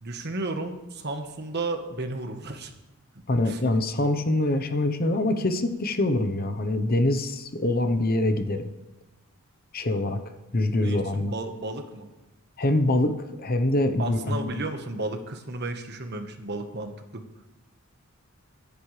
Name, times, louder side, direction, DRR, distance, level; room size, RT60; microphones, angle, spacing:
voice 1, 0.0-2.7 3.5-3.6 10.8-12.1 14.0-17.2, right 2 dB, 50° right, 6 dB, 1.3 m, -33 dB
voice 2, 3.3-8.7 9.7-10.2 10.5-11.3 12.6-14.6, left 1 dB, 40° left, 8 dB, 0.9 m, -24 dB
23.0 x 10.0 x 3.3 m, 1.0 s
head